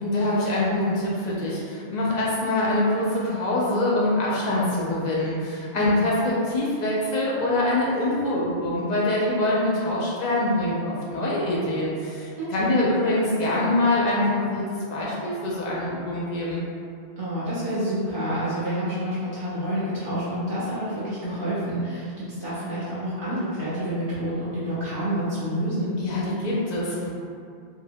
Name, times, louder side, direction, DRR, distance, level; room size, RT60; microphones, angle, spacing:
voice 1, 0.0-16.6 26.0-27.1, left 1 dB, 55° left, -6 dB, 0.5 m, -24 dB
voice 2, 5.7-6.1 12.4-12.8 17.2-25.9, right 1 dB, 60° right, -10 dB, 0.7 m, -28 dB
2.8 x 2.0 x 2.6 m, 2.4 s
omnidirectional pair, 1.2 m